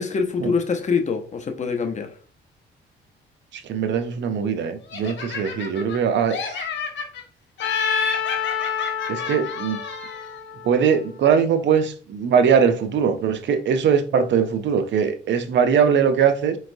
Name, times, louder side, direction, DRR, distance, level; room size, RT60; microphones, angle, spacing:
voice 1, 0.0-2.1, left 5 dB, 35° left, 0.7 m, -24 dB
voice 2, 3.5-6.4 9.1-9.8 10.6-16.6, right 7 dB, 65° right, 0.6 m, -21 dB
Laughter, 4.9-6.0 6.3-7.2 7.6-10.4, left 4 dB, 65° left, 1.0 m, -30 dB
Trumpet, 7.6-11.6, left 9 dB, 85° left, 0.6 m, -29 dB
4.3 x 3.1 x 2.6 m
cardioid pair, 90°, 20 cm